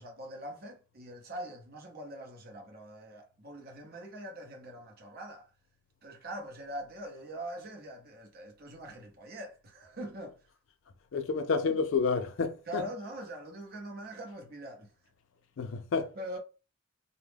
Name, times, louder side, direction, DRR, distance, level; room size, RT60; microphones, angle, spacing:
voice 1, 0.0-5.5 6.0-10.4 12.7-14.9 16.1-16.4, right 1 dB, 50° right, 0.7 m, -43 dB
voice 2, 11.1-12.8 15.6-16.1, left 5 dB, 85° left, 0.4 m, -29 dB
2.3 x 2.0 x 3.2 m
head